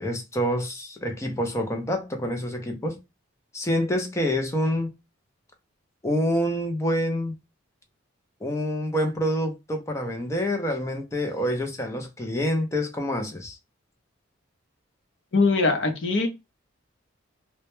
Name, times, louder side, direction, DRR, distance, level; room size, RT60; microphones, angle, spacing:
voice 1, 0.0-3.0 3.5-4.9 6.0-7.3 8.4-13.6, equal, 15° left, 0.4 m, -27 dB
voice 2, 15.3-16.3, left 3 dB, 65° left, 0.6 m, -21 dB
2.1 x 2.1 x 2.9 m
head